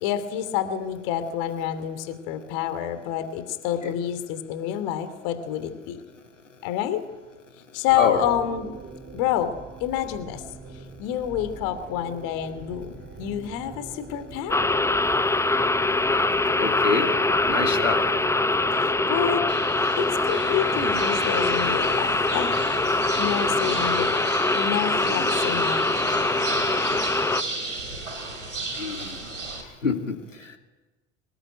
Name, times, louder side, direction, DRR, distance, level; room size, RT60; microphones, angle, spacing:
voice 1, 0.0-6.0 6.6-7.0 7.7-8.7 9.1-9.5 9.8-10.4 11.0-12.9 13.2-14.7 18.7-22.5 22.9-26.2, left 10 dB, 60° left, 10 dB, 3.0 m, -28 dB
sound 1, 7.9-24.0, right 5 dB, 30° right, 3.5 m, -41 dB
sound 2, 14.5-27.4, left 2 dB, 5° left, 0.9 m, -23 dB
voice 2, 16.6-17.1 17.4-18.0 28.8-29.2 29.8-30.6, left 4 dB, 90° left, 5 dB, 2.7 m, -26 dB
sound 3, 19.5-29.6, right 3 dB, 90° right, 4.6 m, -34 dB
25.0 x 20.5 x 9.4 m, 1.2 s
figure-of-eight pair, 70°, 36 cm